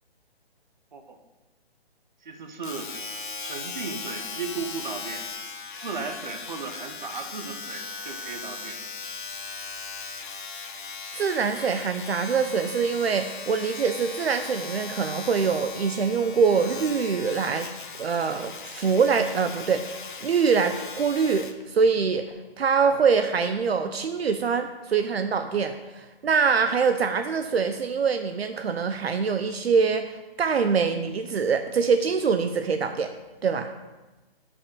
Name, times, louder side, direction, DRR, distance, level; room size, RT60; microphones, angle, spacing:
voice 1, 2.2-2.9 3.4-5.3 5.8-8.8, right 5 dB, 45° right, 6 dB, 0.9 m, -35 dB
Domestic sounds home sounds, 2.6-21.6 22.3-22.4, left 5 dB, 50° left, 0.7 m, -38 dB
voice 2, 11.1-17.7 18.0-22.3 22.6-33.1 33.4-33.7, right 5 dB, 75° right, 8 dB, 0.6 m, -24 dB
5.6 x 5.4 x 6.5 m, 1.2 s
hypercardioid pair, 175°, 32 cm